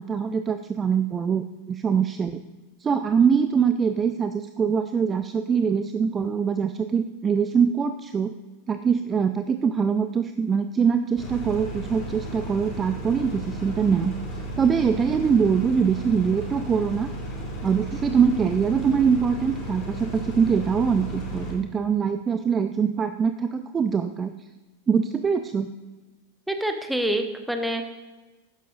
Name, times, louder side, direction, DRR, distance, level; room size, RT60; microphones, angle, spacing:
voice 1, 0.0-2.4 2.8-8.3 8.7-14.1 14.6-17.1 17.6-24.3 24.9-25.7, right 6 dB, 20° right, 9 dB, 0.4 m, -23 dB
sound 1, 11.2-21.5, right 1 dB, 30° left, 3.5 m, -34 dB
voice 2, 26.5-27.9, right 1 dB, ahead, 6 dB, 1.1 m, -26 dB
12.5 x 10.0 x 2.7 m, 1.2 s
figure-of-eight pair, 90°, 0 cm